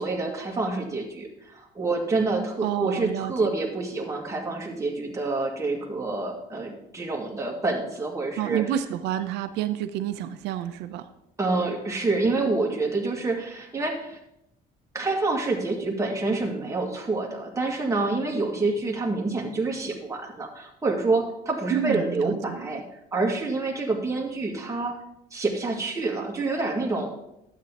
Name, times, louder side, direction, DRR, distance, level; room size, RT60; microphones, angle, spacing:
voice 1, 0.0-8.6 11.4-14.2 14.9-22.8 23.1-24.9 25.3-27.1, right 3 dB, 20° right, -1 dB, 2.0 m, -27 dB
voice 2, 2.6-3.5 8.4-11.1 21.7-22.8, right 11 dB, 90° right, 9 dB, 0.7 m, -29 dB
12.0 x 8.3 x 3.0 m, 0.82 s
cardioid pair, 110°, 17 cm